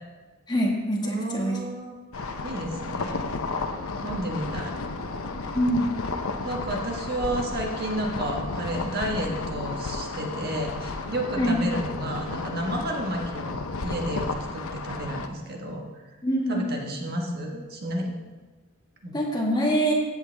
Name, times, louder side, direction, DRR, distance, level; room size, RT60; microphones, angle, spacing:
voice 1, 0.5-1.6 5.5-5.9 11.4-11.6 16.2-16.7 19.1-19.9, equal, 20° left, -1 dB, 1.8 m, -24 dB
voice 2, 1.0-3.2 4.0-4.7 6.4-15.8 16.5-18.1 19.0-19.2, right 1 dB, 50° right, 0 dB, 1.6 m, -31 dB
sound 1, 2.1-15.3, left 3 dB, 85° left, 0.8 m, -33 dB
15.5 x 8.0 x 3.5 m, 1.3 s
head